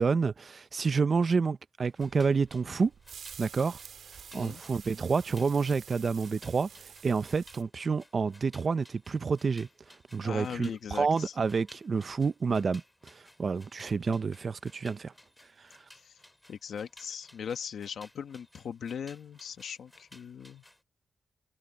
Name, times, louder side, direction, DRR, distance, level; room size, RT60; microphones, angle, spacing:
voice 1, 0.0-2.9 3.4-3.8 4.3-6.7 7.0-9.7 10.1-15.1, right 5 dB, 40° right, 0.6 m, -29 dB
sound 1, 1.8-20.8, left 1 dB, 10° left, 6.7 m, -58 dB
sound 2, 2.0-7.6, right 7 dB, 80° right, 2.8 m, -49 dB
voice 2, 10.2-11.3 15.9-16.2 16.5-20.6, left 7 dB, 75° left, 1.2 m, -39 dB
wide cardioid pair, 150°, 0 cm